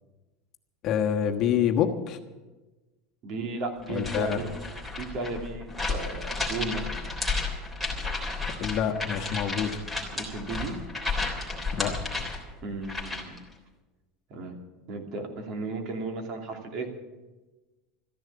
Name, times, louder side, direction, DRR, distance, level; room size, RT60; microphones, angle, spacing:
voice 1, 0.8-2.2 3.9-4.4 8.6-9.8 11.7-11.9, left 9 dB, 40° left, 5 dB, 1.3 m, -26 dB
voice 2, 3.2-4.5 5.0-7.0 10.1-10.8 12.6-13.4 14.3-14.5 14.9-16.9, right 3 dB, 50° right, 3 dB, 2.7 m, -34 dB
sound 1, 3.9-13.4, left 3 dB, 5° right, 3.3 m, -33 dB
14.0 x 10.5 x 8.5 m, 1.2 s
supercardioid pair, 145°, 0 cm